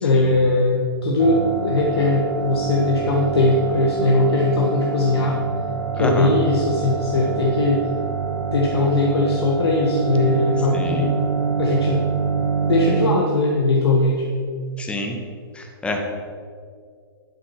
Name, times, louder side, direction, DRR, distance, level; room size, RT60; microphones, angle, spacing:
voice 1, 0.0-5.4 5.9-7.8 8.5-11.1 11.6-12.0 12.7-14.2, left 2 dB, 85° left, -1 dB, 1.5 m, -20 dB
sound 1, 1.2-13.1, right 5 dB, 80° right, 1.1 m, -26 dB
voice 2, 6.0-6.3 10.7-11.1 14.8-15.2 15.6-16.0, left 1 dB, 10° left, 2 dB, 1.3 m, -27 dB
11.5 x 6.1 x 6.0 m, 2.1 s
hypercardioid pair, 135°, 13 cm